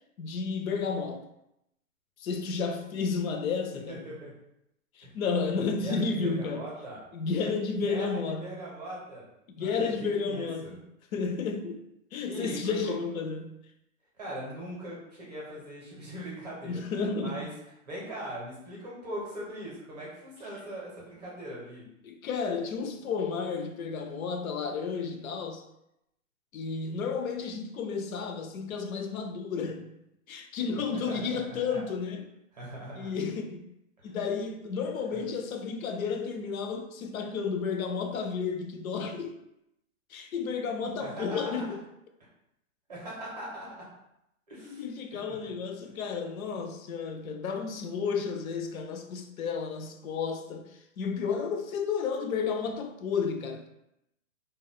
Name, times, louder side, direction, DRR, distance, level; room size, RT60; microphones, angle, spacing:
voice 1, 0.2-1.2 2.2-4.0 5.0-6.7 7.1-8.5 9.6-10.7 11.1-11.8 12.1-13.5 16.6-17.4 22.0-25.6 26.5-29.9 30.3-32.2 33.0-33.6 34.0-39.4 40.1-41.8 44.6-53.7, left 5 dB, 80° left, 0.5 m, -32 dB
voice 2, 3.9-4.3 5.0-5.1 5.8-7.0 7.8-9.3 9.6-10.8 12.2-13.0 14.2-16.8 17.2-17.5 17.8-21.9 30.9-31.8 32.5-33.1 34.0-34.2 35.1-35.2 41.0-41.7 42.9-43.9 44.5-44.8 45.1-45.5, right 1 dB, 30° right, 0.6 m, -40 dB
2.1 x 2.0 x 3.5 m
hypercardioid pair, 175°, 42 cm